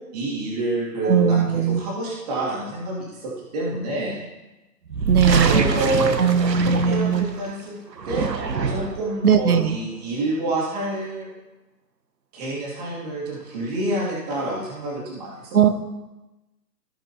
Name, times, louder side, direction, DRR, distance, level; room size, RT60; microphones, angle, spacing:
voice 1, 0.1-4.2 5.4-7.8 8.0-8.2 8.7-11.3 12.3-15.6, right 2 dB, 25° right, -5 dB, 2.6 m, -28 dB
voice 2, 1.0-1.8 5.1-5.6 6.2-7.3 9.2-9.8 15.5-15.7, right 7 dB, 60° right, 11 dB, 1.0 m, -19 dB
sound 1, 4.9-7.5 7.9-9.1, right 5 dB, 75° right, 1.3 m, -24 dB
17.0 x 5.7 x 2.9 m, 1.1 s
hypercardioid pair, 165°, 50 cm